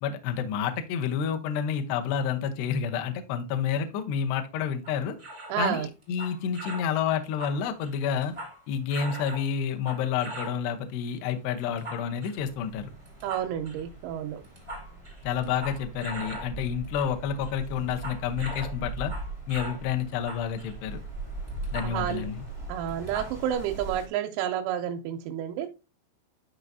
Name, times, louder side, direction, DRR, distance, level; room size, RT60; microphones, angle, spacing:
voice 1, 0.0-5.2 5.6-8.3 8.7-12.9 15.2-19.1 19.5-21.0 21.7-22.4, left 7 dB, 80° left, 2.4 m, -29 dB
sound 1, 4.8-5.6 6.0-6.9 7.2-8.6 8.9-10.6 11.6-12.4 13.0-13.8 14.4-16.5 16.8-17.2 17.4-19.9 20.1-22.2 22.5-22.6 22.9-23.5, right 1 dB, 40° right, 0.4 m, -41 dB
voice 2, 5.5-5.9 13.2-14.4 21.8-22.3 22.7-25.7, right 10 dB, 90° right, 3.4 m, -30 dB
sound 2, 12.4-24.1, right 2 dB, 30° left, 0.5 m, -40 dB
12.5 x 4.7 x 2.7 m
omnidirectional pair, 6.0 m